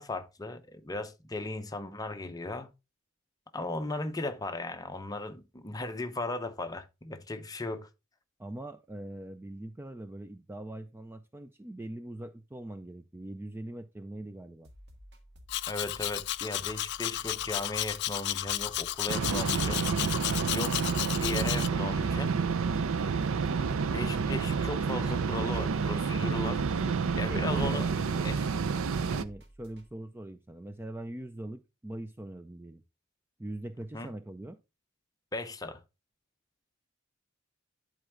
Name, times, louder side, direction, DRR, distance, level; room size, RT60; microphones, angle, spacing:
voice 1, 0.0-2.7 3.5-7.9 15.7-20.2 20.5-20.8 21.1-22.3 23.9-26.6 27.1-27.9 28.2-28.5 33.9-34.1 35.3-35.8, left 2 dB, 20° left, 0.8 m, -36 dB
voice 2, 8.4-14.7 26.8-28.3 28.6-28.8 29.1-32.8 33.4-34.6, right 1 dB, 10° right, 0.4 m, -42 dB
sound 1, 14.6-29.9, equal, 60° right, 1.4 m, -54 dB
Domestic sounds home sounds, 15.5-21.7, left 14 dB, 55° left, 0.3 m, -33 dB
sound 2, 19.1-29.2, right 5 dB, 80° right, 0.5 m, -29 dB
11.0 x 4.5 x 3.5 m
head